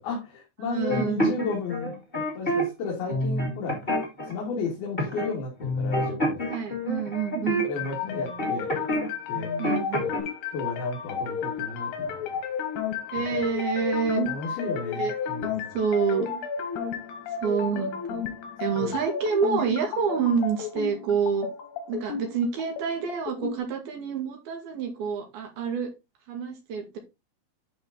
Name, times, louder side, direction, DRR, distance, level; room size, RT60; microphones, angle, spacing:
voice 1, 0.0-2.0 2.3-3.8 4.2-6.4 7.6-8.7 9.3-9.5 10.0-10.2 10.5-12.4 14.3-15.7 18.8-18.9, left 4 dB, 70° left, -3 dB, 4.0 m, -33 dB
voice 2, 0.6-1.3 6.5-7.7 9.6-10.0 13.1-14.3 15.0-15.1 15.7-16.4 17.4-18.2 18.6-21.5 21.9-25.9 26.3-27.0, right 6 dB, 75° right, 3 dB, 3.8 m, -27 dB
sound 1, 0.9-2.6 3.1-4.3 5.0-5.3 5.6-9.1 9.3-10.2, equal, 15° left, 2.8 m, -28 dB
sound 2, 7.6-23.6, left 7 dB, 90° left, 3.5 m, -33 dB
11.5 x 4.1 x 3.9 m, 0.25 s
omnidirectional pair, 4.5 m